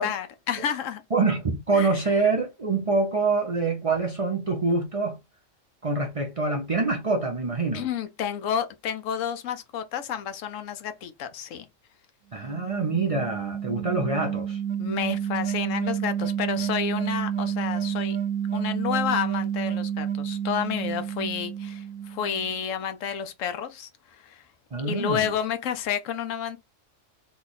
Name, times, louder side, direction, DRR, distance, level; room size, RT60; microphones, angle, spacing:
voice 1, 0.0-1.0 1.7-2.0 7.7-11.7 14.8-18.2 18.5-24.5 24.8-26.6, left 8 dB, 85° left, 1.0 m, -30 dB
voice 2, 1.1-5.2 5.8-7.8 12.3-14.6 24.7-25.3, right 3 dB, 40° right, 0.5 m, -25 dB
sound 1, 12.4-22.5, right 9 dB, 75° right, 1.0 m, -30 dB
3.2 x 2.3 x 4.0 m
omnidirectional pair, 1.3 m